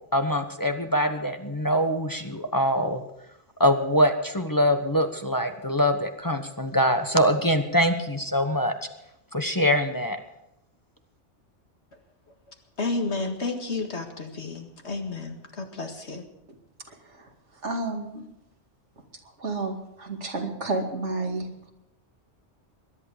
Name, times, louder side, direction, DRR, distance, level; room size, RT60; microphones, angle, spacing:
voice 1, 0.1-3.0 3.6-8.7 9.3-10.2, equal, 20° left, 6 dB, 1.0 m, -23 dB
voice 2, 12.8-16.3, left 3 dB, 70° left, 4 dB, 2.1 m, -31 dB
voice 3, 17.6-18.2 19.4-21.7, right 3 dB, 75° right, 2 dB, 2.6 m, -31 dB
21.5 x 11.0 x 5.0 m, 0.84 s
omnidirectional pair, 1.2 m